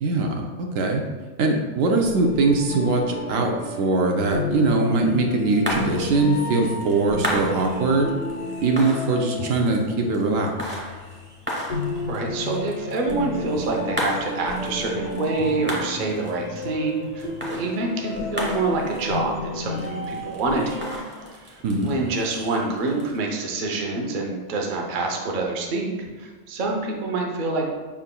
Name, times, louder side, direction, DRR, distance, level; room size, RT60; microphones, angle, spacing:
voice 1, 0.0-1.0 1.4-8.1 8.6-10.6 21.6-21.9, right 3 dB, 75° right, 2 dB, 0.9 m, -22 dB
sound 1, 2.0-21.0, left 2 dB, 65° left, 0.4 m, -32 dB
sound 2, 5.0-23.2, equal, 10° right, 0.7 m, -35 dB
voice 2, 11.9-20.8 21.4-27.7, right 3 dB, 50° right, 1 dB, 0.6 m, -26 dB
5.5 x 3.6 x 2.2 m, 1.3 s
omnidirectional pair, 1.4 m